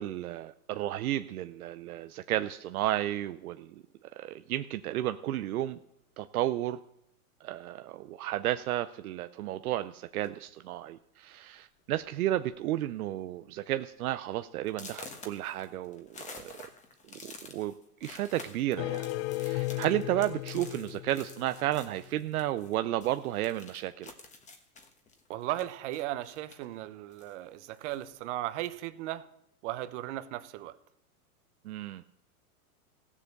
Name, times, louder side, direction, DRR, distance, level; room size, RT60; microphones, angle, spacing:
voice 1, 0.0-3.8 4.1-5.8 6.2-6.8 7.4-16.7 17.2-17.7 18.0-19.1 19.4-24.1 31.6-32.0, right 13 dB, 75° right, 10 dB, 0.7 m, -32 dB
sound 1, 10.2-10.5 11.3-11.4 11.8-12.1 12.4-12.8 13.2-13.3 13.8-13.9 14.7-22.7 23.0-26.7 27.1-28.1, left 4 dB, 15° left, 1.3 m, -50 dB
sound 2, 18.8-21.8, left 19 dB, 45° left, 0.4 m, -35 dB
voice 2, 25.3-29.3 29.6-30.8, right 14 dB, 50° right, 13 dB, 1.0 m, -36 dB
15.0 x 7.4 x 6.6 m, 0.77 s
hypercardioid pair, 130°, 44 cm